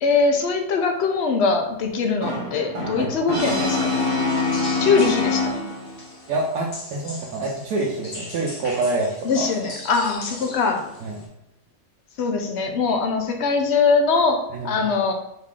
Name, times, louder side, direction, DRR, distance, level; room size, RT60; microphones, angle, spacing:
voice 1, 0.0-4.1 4.8-5.6 9.2-10.9 12.2-15.1, left 4 dB, 65° left, 4 dB, 0.7 m, -22 dB
Brass instrument, 2.2-6.0, left 3 dB, 30° right, 0.6 m, -24 dB
sound 1, 4.0-11.3, left 2 dB, 45° left, 0.9 m, -40 dB
voice 2, 6.3-9.5 11.0-11.2 14.5-14.7, right 2 dB, 75° right, -3 dB, 1.1 m, -26 dB
4.0 x 2.7 x 3.7 m, 0.84 s
omnidirectional pair, 1.7 m